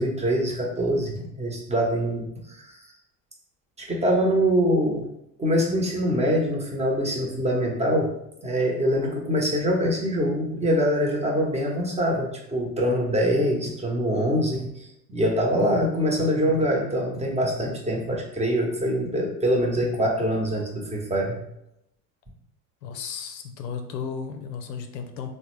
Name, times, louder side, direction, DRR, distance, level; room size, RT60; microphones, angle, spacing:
voice 1, 0.0-2.8 3.8-5.1 5.4-8.1 8.4-21.4, equal, 15° right, -1 dB, 0.9 m, -24 dB
voice 2, 22.8-25.3, left 6 dB, 90° left, 5 dB, 0.6 m, -34 dB
3.5 x 2.2 x 3.0 m, 0.80 s
hypercardioid pair, 75°, 48 cm